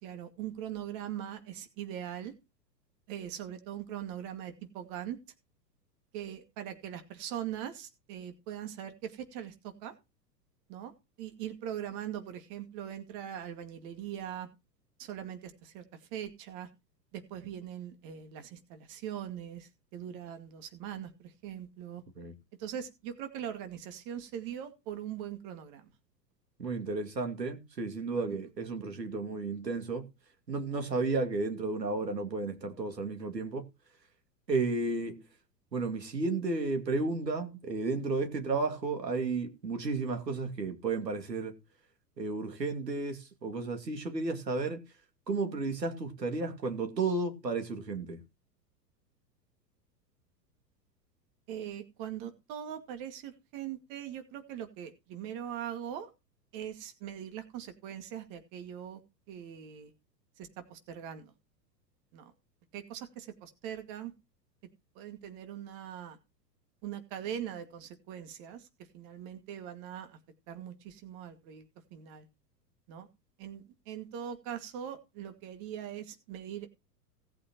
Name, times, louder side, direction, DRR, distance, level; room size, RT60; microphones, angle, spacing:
voice 1, 0.0-2.3 3.1-5.2 6.1-9.9 10.7-10.9 11.2-14.5 15.0-16.7 17.1-22.0 22.6-25.9 51.5-56.1 56.5-59.0 59.3-59.9 60.4-61.3 62.1-62.3 62.7-64.1 65.0-66.2 66.8-68.7 68.9-70.2 70.5-72.3 72.9-73.1 73.4-76.7, right 10 dB, 40° right, 2.2 m, -41 dB
voice 2, 26.6-30.1 30.5-33.7 34.5-35.3 35.7-41.6 42.2-44.8 45.3-48.2, right 3 dB, 80° right, 2.5 m, -33 dB
18.0 x 8.5 x 3.0 m
figure-of-eight pair, 95°, 49 cm